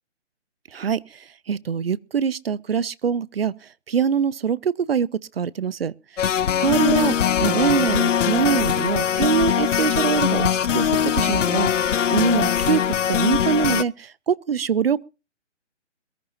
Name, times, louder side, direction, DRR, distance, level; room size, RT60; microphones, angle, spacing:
voice 1, 0.7-3.6 3.9-6.3 6.6-15.0, right 7 dB, 55° right, 0.6 m, -24 dB
sound 1, 6.2-13.8, left 9 dB, 85° left, 0.6 m, -21 dB
22.5 x 14.0 x 2.6 m
hypercardioid pair, 170°, 36 cm